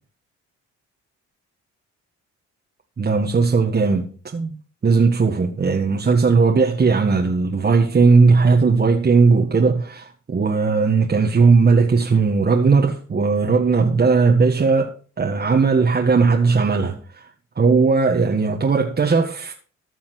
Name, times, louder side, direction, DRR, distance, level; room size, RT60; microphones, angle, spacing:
voice 1, 3.0-4.5 4.8-17.3 17.5-19.5, right 4 dB, 35° right, 1.7 m, -17 dB
14.5 x 5.7 x 6.0 m
cardioid pair, 90°, 30 cm